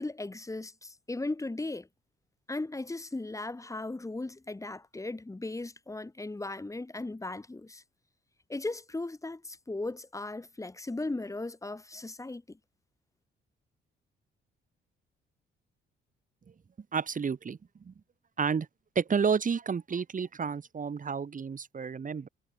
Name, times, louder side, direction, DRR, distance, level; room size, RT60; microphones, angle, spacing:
voice 1, 0.0-1.9 2.5-7.8 8.5-12.6, left 2 dB, 15° left, 4.6 m, -37 dB
voice 2, 16.9-17.6 17.8-17.9 18.4-18.7 18.9-22.3, right 6 dB, 40° right, 7.9 m, -30 dB
cardioid pair, 90°, 20 cm